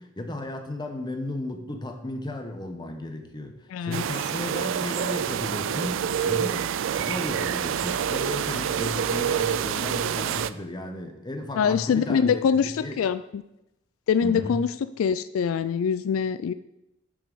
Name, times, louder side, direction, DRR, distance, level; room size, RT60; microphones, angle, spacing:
voice 1, 0.0-3.6 3.8-13.0 14.2-14.6, left 1 dB, 20° left, 4 dB, 0.9 m, -34 dB
voice 2, 3.7-4.0 11.6-13.4 14.1-16.5, left 7 dB, 85° left, 13 dB, 0.3 m, -24 dB
sound 1, 3.9-10.5, right 8 dB, 70° right, 0.3 m, -27 dB
6.7 x 5.3 x 6.9 m, 0.91 s
head